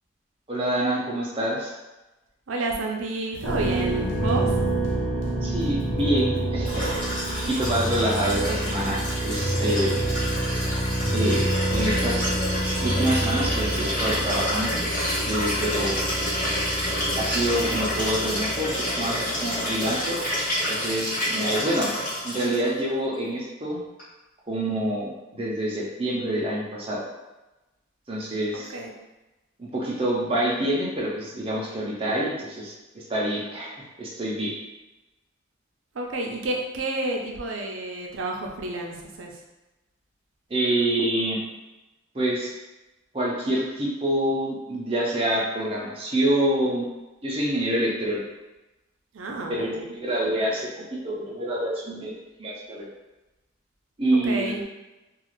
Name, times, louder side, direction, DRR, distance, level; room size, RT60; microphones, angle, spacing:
voice 1, 0.5-1.7 5.4-7.0 7.4-10.0 11.1-12.3 12.6-14.8 15.2-16.0 17.1-20.2 20.7-21.9 22.2-23.8 24.5-27.0 28.1-28.7 29.6-33.7 34.0-34.5 40.5-41.4 42.1-42.5 43.1-46.8 47.2-48.2 49.5-52.1 52.4-52.9 54.0-54.5, right 1 dB, 30° right, -5 dB, 0.6 m, -26 dB
voice 2, 2.5-4.6 9.7-10.1 28.5-28.9 35.9-39.4 49.1-49.8 54.1-54.6, right 2 dB, 85° right, 1 dB, 0.5 m, -30 dB
sound 1, 3.3-8.4, left 2 dB, 65° left, 0.4 m, -40 dB
sound 2, 3.4-20.0, right 1 dB, 10° left, 0.7 m, -28 dB
Liquid, 6.6-22.7 24.0-24.1, equal, 40° left, 1.1 m, -29 dB
2.4 x 2.4 x 3.0 m, 1.1 s
head